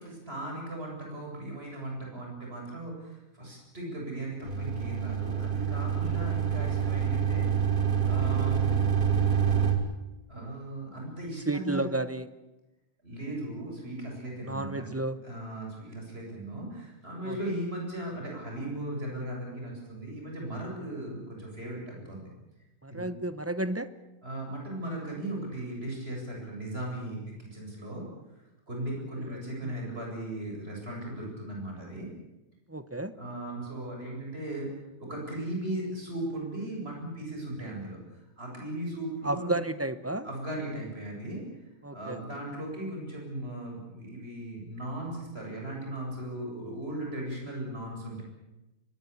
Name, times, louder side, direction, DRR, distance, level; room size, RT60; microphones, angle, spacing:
voice 1, 0.0-7.5 8.0-8.8 10.3-11.9 13.0-14.9 15.2-22.3 22.9-23.1 24.2-28.1 28.7-32.1 33.2-34.7 35.0-39.6 40.2-41.4 41.9-48.2, right 1 dB, 40° right, -1 dB, 8.4 m, -37 dB
sound 1, 4.4-9.7, right 8 dB, 70° right, 3.2 m, -27 dB
voice 2, 11.5-12.3 14.4-15.2 17.3-17.4 20.8-20.9 22.8-23.9 29.3-29.8 32.7-33.1 39.2-40.3 41.8-42.2, right 2 dB, 15° right, 13 dB, 0.7 m, -32 dB
24.0 x 20.0 x 8.6 m, 0.99 s
omnidirectional pair, 1.6 m